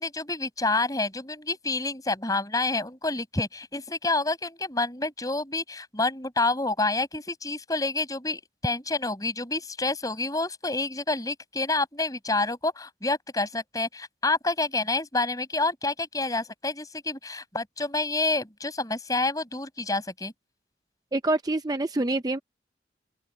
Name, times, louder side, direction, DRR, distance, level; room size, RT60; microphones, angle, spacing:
voice 1, 0.0-20.3, left 2 dB, 20° left, 5.8 m, -28 dB
voice 2, 21.1-22.4, right 2 dB, 20° right, 0.5 m, -26 dB
open air
head